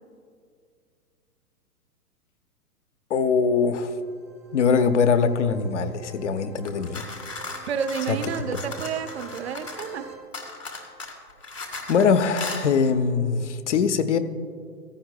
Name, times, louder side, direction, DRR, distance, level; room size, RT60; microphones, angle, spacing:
voice 1, 3.1-4.0 4.5-7.1 8.1-8.2 8.5-8.6 11.9-14.2, left 5 dB, 50° left, 0.7 m, -22 dB
sound 1, 3.8-10.2, right 5 dB, 5° right, 0.5 m, -46 dB
sound 2, 6.6-10.0 10.3-12.1 12.4-12.6, left 3 dB, 85° left, 2.5 m, -36 dB
voice 2, 7.7-10.0, right 7 dB, 40° right, 0.7 m, -30 dB
16.5 x 14.5 x 2.3 m
figure-of-eight pair, 115°, 47 cm